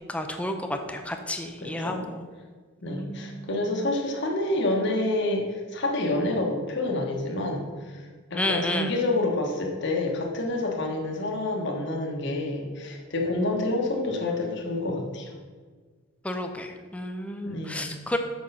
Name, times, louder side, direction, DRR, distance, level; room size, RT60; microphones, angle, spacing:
voice 1, 0.1-2.2 2.9-3.7 8.4-8.9 16.2-18.2, left 1 dB, 5° left, 5 dB, 0.6 m, -31 dB
voice 2, 1.6-2.1 2.8-8.0 8.3-15.3 17.4-17.9, left 2 dB, 55° left, 0 dB, 1.3 m, -28 dB
6.2 x 6.2 x 5.6 m, 1.5 s
head